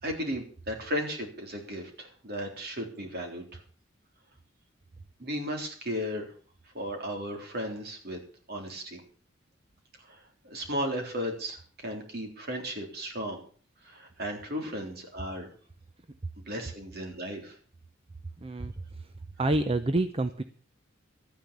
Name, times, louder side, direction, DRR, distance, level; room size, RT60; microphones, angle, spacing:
voice 1, 0.0-3.6 5.2-6.2 6.7-8.2 8.5-9.0 10.1-13.4 13.8-15.5 16.5-17.6, equal, 50° right, 3 dB, 3.7 m, -35 dB
voice 2, 18.4-19.1 19.4-20.4, right 2 dB, 30° right, 10 dB, 0.7 m, -28 dB
13.0 x 9.8 x 6.9 m, 0.43 s
head